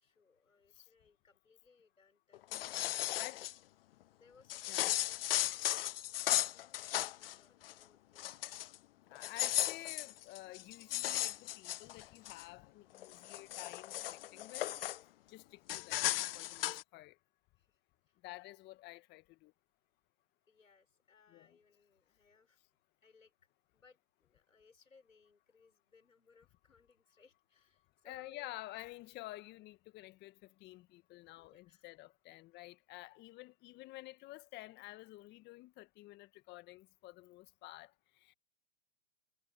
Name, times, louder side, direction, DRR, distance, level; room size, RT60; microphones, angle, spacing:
voice 1, 0.0-3.5 4.1-6.0 6.3-8.6 17.6-17.8 18.1-18.2 20.5-22.6 23.0-23.3 23.7-28.6 31.4-32.0, left 4 dB, 90° left, 7.1 m, -66 dB
sound 1, 2.3-3.5 4.5-7.3 7.6-7.8 8.2-8.8 9.2-12.4 12.9-15.0 15.7-16.8, left 14 dB, 45° left, 0.5 m, -36 dB
voice 2, 9.1-14.8 15.3-16.1 16.3-17.2 18.2-19.5 21.3-21.6 28.1-38.3, left 19 dB, 25° left, 1.7 m, -51 dB
hypercardioid pair, 125°, 39 cm